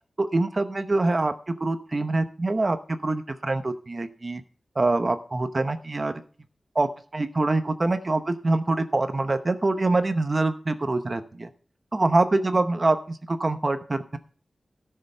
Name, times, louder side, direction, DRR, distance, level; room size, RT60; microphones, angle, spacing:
voice 1, 0.2-4.4 4.7-6.1 6.7-11.5 11.9-14.2, right 2 dB, 35° right, 9 dB, 0.8 m, -25 dB
13.0 x 6.7 x 5.5 m, 0.42 s
wide cardioid pair, 105°, 0 cm